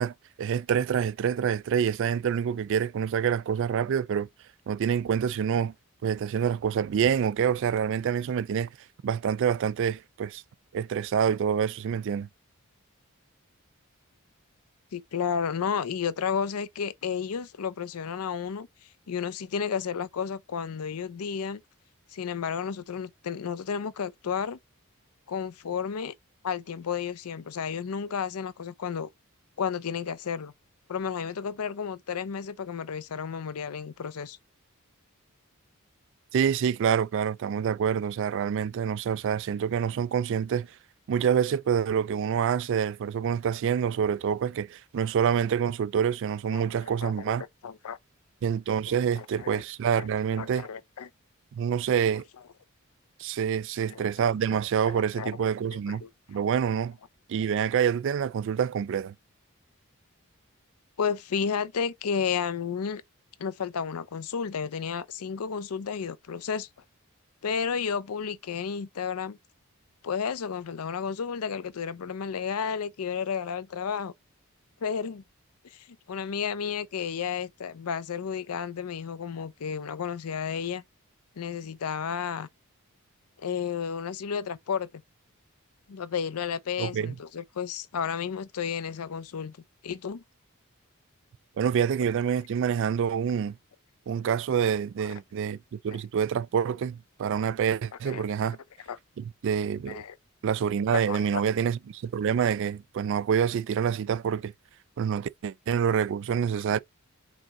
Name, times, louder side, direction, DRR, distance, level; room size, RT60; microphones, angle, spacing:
voice 1, 0.0-4.3 4.7-5.7 6.0-8.7 9.0-10.4 10.7-12.3 36.3-40.7 41.1-47.4 48.4-50.7 51.6-52.2 53.2-56.0 56.3-57.0 57.3-59.1 86.8-87.1 91.6-93.6 94.1-95.6 95.8-98.6 99.2-100.0 100.4-104.5 105.0-106.8, right 7 dB, 60° right, 0.3 m, -27 dB
voice 2, 14.9-18.7 19.1-21.6 22.1-24.6 25.3-26.1 26.4-29.1 29.6-30.5 30.9-34.4 46.5-46.6 47.0-47.4 47.6-48.0 49.2-49.6 50.0-50.1 50.3-51.1 53.9-54.1 55.2-55.5 55.9-56.1 56.3-56.4 61.0-63.0 63.4-66.7 67.4-69.4 70.0-74.1 74.8-75.2 75.6-80.8 81.4-82.5 83.4-84.9 85.9-89.6 89.8-90.2 98.0-98.3 98.9-99.0 99.9-100.2 100.9-101.4, left 6 dB, 85° left, 0.5 m, -32 dB
5.1 x 3.6 x 2.9 m
head